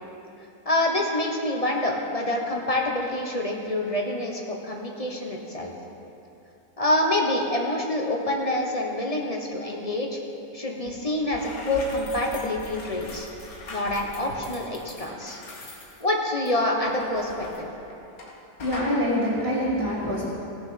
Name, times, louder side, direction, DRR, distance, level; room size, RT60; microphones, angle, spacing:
voice 1, 0.6-5.7 6.8-10.2 10.5-13.3 13.7-15.4 16.0-17.7, left 1 dB, 25° left, 0 dB, 1.1 m, -26 dB
sound 1, 10.8-11.0 11.2-18.3 18.6-18.9, left 2 dB, 75° left, 1.9 m, -41 dB
voice 2, 18.6-20.3, equal, 20° right, -10 dB, 3.1 m, -25 dB
17.5 x 6.4 x 5.8 m, 2.9 s
omnidirectional pair, 1.6 m